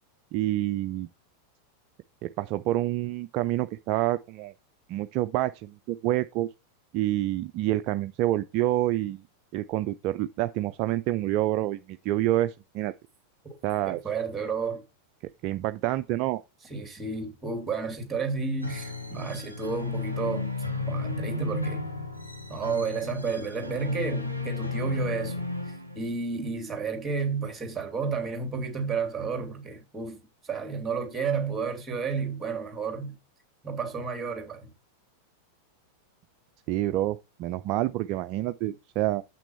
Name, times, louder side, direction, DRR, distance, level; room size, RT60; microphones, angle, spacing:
voice 1, 0.3-1.1 2.4-4.5 4.9-6.5 6.9-9.2 9.5-12.9 13.6-14.0 15.4-16.4 19.1-19.2 36.7-39.2, right 15 dB, 40° right, 0.3 m, -27 dB
voice 2, 13.9-14.8 16.7-20.5 20.9-21.9 22.5-25.5 26.0-33.2 33.6-34.7, right 5 dB, 15° right, 2.6 m, -31 dB
sound 1, 18.6-26.3, left 3 dB, 90° left, 1.3 m, -33 dB
7.5 x 6.0 x 4.5 m
figure-of-eight pair, 90°, 0 cm